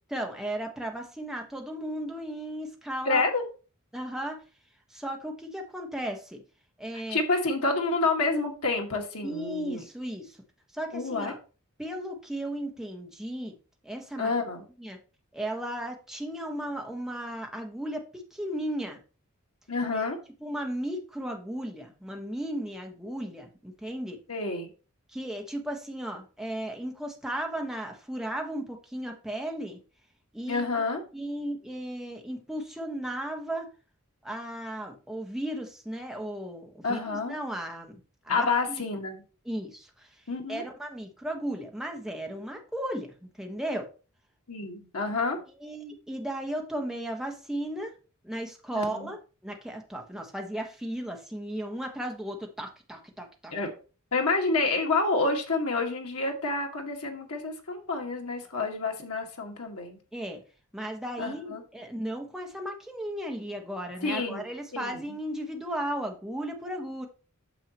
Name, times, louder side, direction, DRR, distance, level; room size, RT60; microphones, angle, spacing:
voice 1, 0.1-3.2 3.9-4.4 4.9-6.4 6.8-7.2 9.2-10.4 10.7-11.4 11.8-13.6 13.8-14.3 14.8-15.0 15.3-19.0 19.9-20.0 20.4-24.2 25.1-29.8 30.3-30.6 31.1-33.7 34.2-38.9 39.4-40.1 40.5-43.9 45.6-47.9 48.2-49.2 49.4-53.5 60.1-60.4 60.7-67.1, right 1 dB, ahead, 2 dB, 1.4 m, -35 dB
voice 2, 3.1-3.4 7.1-9.8 10.9-11.3 14.2-14.6 19.7-20.2 24.3-24.7 30.5-31.0 36.8-37.3 38.3-39.2 40.3-40.7 44.5-45.4 48.8-49.1 53.5-53.7 54.1-60.0 61.2-61.6 64.0-65.2, left 3 dB, 85° left, 2 dB, 1.9 m, -28 dB
9.2 x 6.8 x 3.0 m, 0.34 s
head